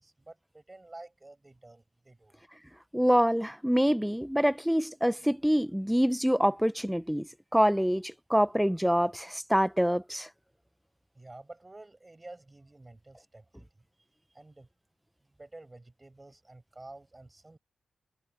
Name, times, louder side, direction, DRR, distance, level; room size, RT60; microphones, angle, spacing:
voice 1, 0.0-2.3 11.1-13.7 14.3-14.7 15.2-17.6, right 2 dB, 20° right, 7.7 m, -50 dB
voice 2, 2.9-10.3, equal, ahead, 1.0 m, -26 dB
cardioid pair, 100°, 0 cm